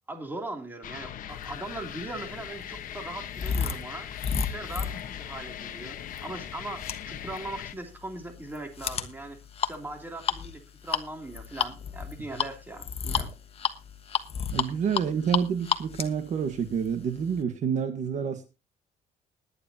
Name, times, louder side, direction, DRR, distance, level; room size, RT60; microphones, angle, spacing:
voice 1, 0.1-13.3, right 2 dB, 10° right, 4 dB, 2.9 m, -40 dB
sound 1, 0.8-7.7, left 10 dB, 55° left, 1.2 m, -40 dB
sound 2, 1.7-17.4, left 7 dB, 35° left, 1.3 m, -33 dB
voice 2, 14.5-18.5, right 7 dB, 45° right, 7 dB, 1.5 m, -28 dB
20.5 x 9.9 x 2.8 m, 0.29 s
cardioid pair, 150°, 17 cm